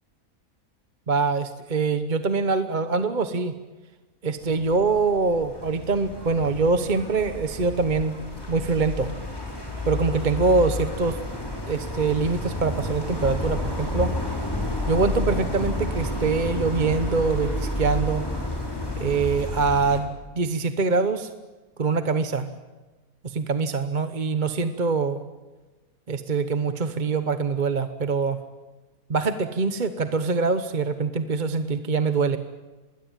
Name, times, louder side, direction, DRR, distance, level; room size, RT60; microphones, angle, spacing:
voice 1, 1.1-3.5 4.2-8.1 8.5-9.1 9.9-11.2 11.7-14.1 14.9-18.2 19.0-20.1 20.3-21.3 21.8-22.5 23.2-25.2 26.1-28.4 29.1-32.4, right 4 dB, 35° right, 9 dB, 1.1 m, -24 dB
sound 1, 4.4-20.0, left 1 dB, 15° left, 4.9 m, -31 dB
26.0 x 20.5 x 9.1 m, 1.2 s
omnidirectional pair, 1.5 m